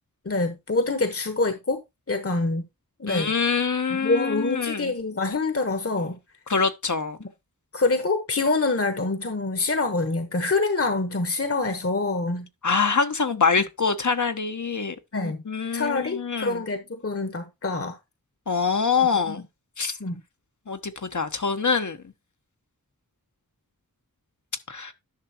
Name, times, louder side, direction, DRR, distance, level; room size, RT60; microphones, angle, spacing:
voice 1, 0.2-1.8 2.1-2.6 3.0-3.3 3.9-6.2 7.2-7.3 7.7-12.5 15.1-15.4 15.7-18.0 19.3-19.4 20.0-20.2, left 3 dB, 40° left, 1.2 m, -26 dB
voice 2, 3.1-4.9 6.5-7.2 12.6-16.6 18.5-19.4 19.8-20.0 20.7-22.0 24.7-24.9, left 5 dB, 55° left, 1.0 m, -25 dB
10.5 x 5.9 x 2.9 m
wide cardioid pair, 55°, 35 cm